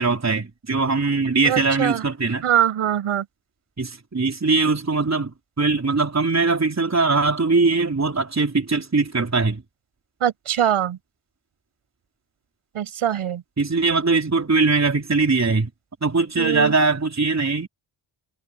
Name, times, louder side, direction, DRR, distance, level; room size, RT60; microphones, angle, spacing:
voice 1, 0.0-2.5 3.8-9.6 13.6-15.7 16.0-17.7, right 3 dB, 30° right, 4.1 m, -21 dB
voice 2, 1.4-2.0 2.4-3.2 10.2-11.0 12.7-13.4 16.4-16.7, right 10 dB, 85° right, 8.0 m, -22 dB
supercardioid pair, 50°, 49 cm